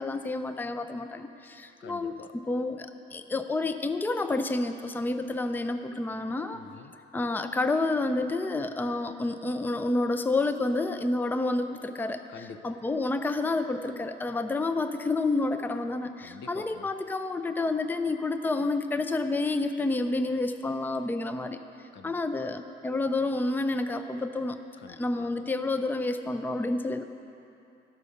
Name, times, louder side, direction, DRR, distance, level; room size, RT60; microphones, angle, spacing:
voice 1, 0.0-2.2 2.5-6.6 7.1-12.2 12.6-21.6 22.0-24.6 24.9-27.0, left 2 dB, 10° left, 8 dB, 0.4 m, -29 dB
voice 2, 1.8-2.4 6.5-7.0 12.3-12.8 16.2-16.9 21.9-22.5 24.8-25.3, left 6 dB, 65° left, 8 dB, 0.6 m, -47 dB
12.0 x 5.6 x 6.4 m, 2.8 s
cardioid pair, 90°, 20 cm